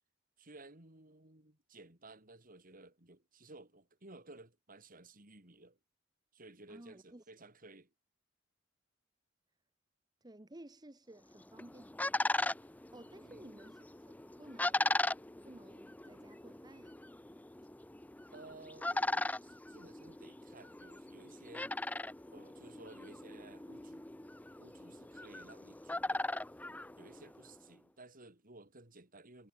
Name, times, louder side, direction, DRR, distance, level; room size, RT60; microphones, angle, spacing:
voice 1, 0.4-5.8 6.3-7.9 13.2-13.5 18.3-21.7 22.3-24.1 24.6-26.3 27.0-29.5, right 2 dB, 45° right, 4.3 m, -56 dB
voice 2, 6.7-7.2 10.2-12.0 12.6-15.0 15.4-17.0, right 1 dB, 20° right, 1.2 m, -55 dB
sound 1, 11.3-27.6, left 2 dB, 10° left, 0.5 m, -39 dB
head